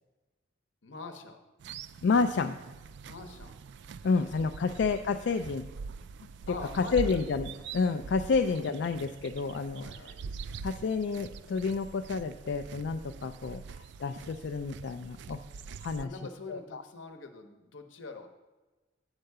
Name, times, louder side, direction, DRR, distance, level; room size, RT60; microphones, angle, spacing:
voice 1, 0.8-1.4 3.0-3.5 4.2-4.7 6.5-7.2 8.4-8.6 9.8-10.1 16.0-18.3, left 3 dB, 80° left, 6 dB, 0.9 m, -45 dB
sound 1, 1.6-16.0, right 5 dB, 65° right, 0.3 m, -44 dB
voice 2, 2.0-2.6 4.0-5.6 6.5-9.8 10.6-13.6 14.0-15.4 15.8-16.1 16.5-16.8, left 4 dB, 65° left, 6 dB, 0.3 m, -29 dB
8.9 x 4.6 x 6.6 m, 1.2 s
head